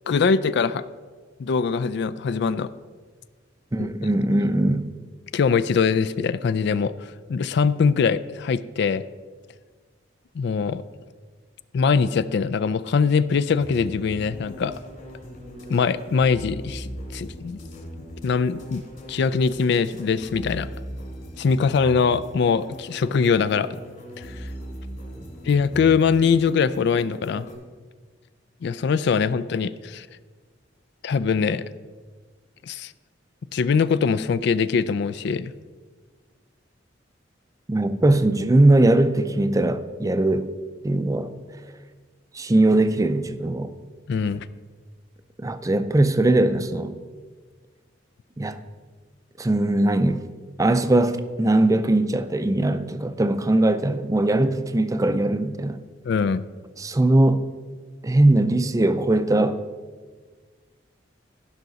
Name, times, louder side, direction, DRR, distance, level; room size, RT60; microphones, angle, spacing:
voice 1, 0.1-0.8 1.4-2.7 3.8-3.9 5.3-9.0 10.4-10.8 11.7-14.7 15.7-17.6 18.2-18.8 19.1-20.7 21.4-23.7 24.2-24.3 25.4-27.5 28.6-30.1 31.0-31.6 32.6-32.9 33.5-35.5 44.1-44.5 56.1-56.4, left 5 dB, 65° left, 15 dB, 0.4 m, -22 dB
voice 2, 3.7-4.9 37.7-40.5 40.8-41.3 42.3-43.7 45.4-47.0 48.4-48.6 49.4-50.2 50.6-55.8 56.8-57.4 58.0-59.6, right 2 dB, 20° right, 11 dB, 0.4 m, -20 dB
sound 1, 13.6-27.5, equal, 45° left, 3.1 m, -39 dB
15.5 x 5.7 x 4.0 m, 1.5 s
head